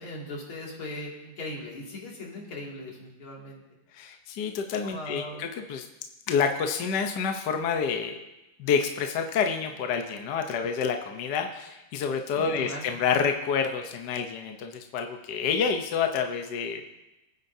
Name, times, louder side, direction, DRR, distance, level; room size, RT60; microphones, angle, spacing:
voice 1, 0.0-3.6 4.9-5.4 12.3-12.9, left 1 dB, 85° left, -3 dB, 3.3 m, -39 dB
voice 2, 3.9-5.8 6.3-8.2 8.6-16.8, left 6 dB, 60° left, 5 dB, 1.4 m, -28 dB
22.0 x 9.5 x 2.7 m, 0.98 s
omnidirectional pair, 2.2 m